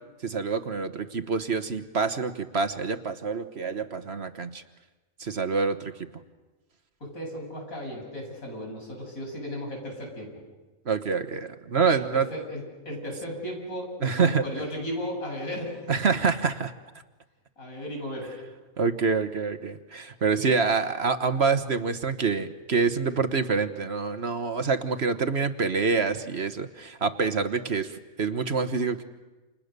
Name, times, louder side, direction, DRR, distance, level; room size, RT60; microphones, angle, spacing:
voice 1, 0.2-4.6 5.2-6.1 10.8-12.3 14.0-14.4 15.9-16.7 18.8-29.0, right 5 dB, 50° right, 9 dB, 1.4 m, -26 dB
voice 2, 7.0-10.3 11.9-15.9 17.6-18.3, equal, 80° left, 0 dB, 8.6 m, -35 dB
30.0 x 28.5 x 6.8 m, 1.2 s
omnidirectional pair, 1.4 m